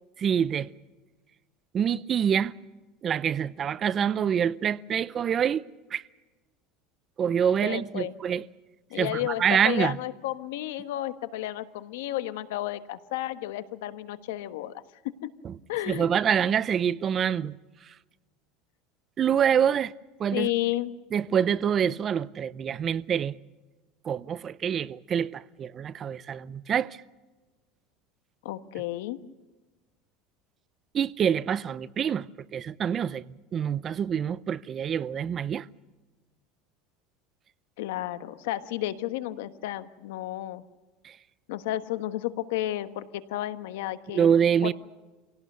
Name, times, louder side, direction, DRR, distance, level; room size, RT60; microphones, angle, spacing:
voice 1, 0.2-0.7 1.7-2.5 3.0-6.0 7.2-8.5 8.9-10.0 15.4-15.6 15.9-17.6 17.8-17.9 19.2-19.9 20.2-20.5 21.1-23.4 24.0-27.0 30.9-33.2 33.5-35.7 41.0-41.2 44.1-44.7, right 8 dB, 30° right, 0.6 m, -26 dB
voice 2, 7.6-8.1 8.9-14.8 15.2-15.3 15.7-16.1 20.3-20.9 28.4-29.2 37.8-40.6 41.5-44.3 44.6-44.7, left 14 dB, 85° left, 1.3 m, -32 dB
26.5 x 17.5 x 6.8 m
supercardioid pair, 145°, 0 cm